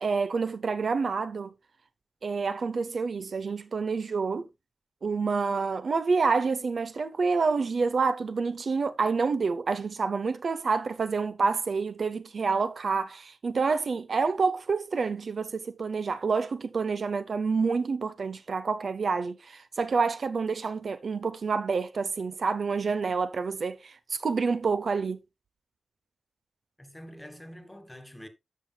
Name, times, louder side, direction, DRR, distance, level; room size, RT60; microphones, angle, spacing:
voice 1, 0.0-1.5 2.2-4.5 5.0-25.2, right 4 dB, 55° right, 0.6 m, -28 dB
voice 2, 26.8-28.3, equal, 10° left, 1.3 m, -46 dB
13.0 x 6.5 x 2.2 m
wide cardioid pair, 150°, 0 cm